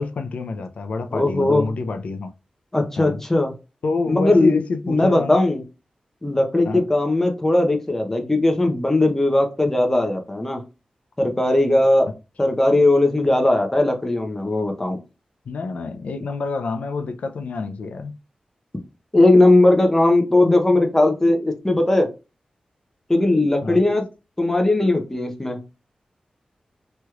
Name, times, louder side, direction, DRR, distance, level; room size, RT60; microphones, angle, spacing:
voice 1, 0.0-2.3 3.0-3.2 3.8-5.4 6.6-6.8 15.5-18.1 23.6-23.8, left 4 dB, 75° left, 0.4 m, -27 dB
voice 2, 1.1-1.7 2.7-3.5 4.1-4.6 4.8-5.6 6.2-10.6 11.2-12.1 12.4-15.0 19.1-22.1 23.1-24.0 24.4-25.6, left 2 dB, 15° left, 0.7 m, -18 dB
3.1 x 2.9 x 2.3 m
wide cardioid pair, 115°, 2 cm